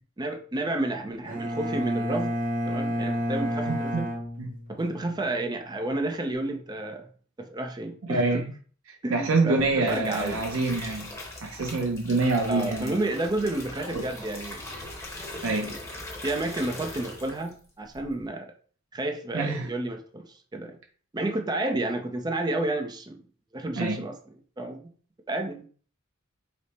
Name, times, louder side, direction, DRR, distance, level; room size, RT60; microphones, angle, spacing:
voice 1, 0.2-2.3 2.7-4.1 4.7-7.1 7.4-8.4 9.0-10.4 12.5-14.6 15.4-15.8 16.2-18.5 18.9-20.8 21.1-23.2 23.5-24.2 24.6-24.9 25.3-25.7, right 2 dB, 20° right, 0.5 m, -31 dB
Bowed string instrument, 1.3-5.1, equal, 40° right, 1.0 m, -30 dB
voice 2, 3.7-4.0 4.4-4.5 8.1-8.5 9.1-11.1 11.4-13.0 13.9-14.1 15.4-15.7 19.3-19.7 23.8-24.0, right 3 dB, 75° right, 0.6 m, -26 dB
sound 1, 9.6-17.6 17.9-18.3, left 1 dB, 15° left, 0.9 m, -40 dB
5.1 x 2.0 x 4.1 m
head